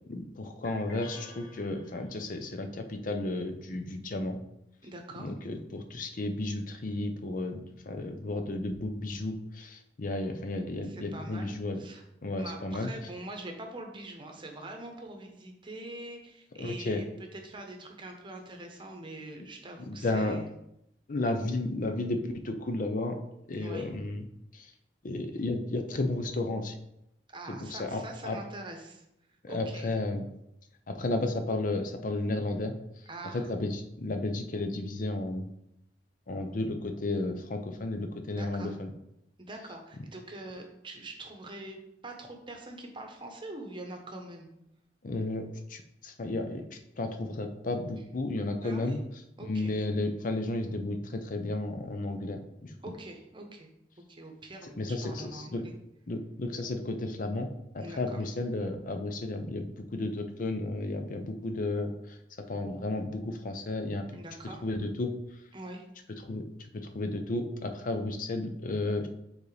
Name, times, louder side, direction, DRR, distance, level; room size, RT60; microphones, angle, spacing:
voice 1, 0.1-4.4 5.2-11.8 12.2-12.9 16.6-17.0 19.9-20.4 21.1-22.2 22.4-23.2 23.5-24.2 24.5-24.7 25.0-26.8 27.5-28.4 29.4-30.3 30.9-32.7 33.5-35.5 36.3-38.9 45.0-49.0 49.4-52.7 54.6-55.6 56.1-57.5 57.7-62.2 62.5-64.1 64.6-65.1 66.2-66.4 66.8-69.1, left 2 dB, 50° left, 6 dB, 0.6 m, -33 dB
sound 1, 0.6-2.4, left 1 dB, 80° left, 1.3 m, -49 dB
voice 2, 4.8-5.3 10.8-12.0 12.4-17.0 17.3-20.5 23.6-23.9 27.3-29.0 29.5-29.9 33.1-33.5 38.3-38.7 39.4-41.8 42.0-44.5 48.6-49.0 49.4-49.8 52.8-53.7 54.1-55.7 57.8-58.2 64.1-64.6 65.5-65.8, right 2 dB, 30° right, 3 dB, 0.9 m, -44 dB
7.1 x 4.0 x 3.3 m, 0.80 s
head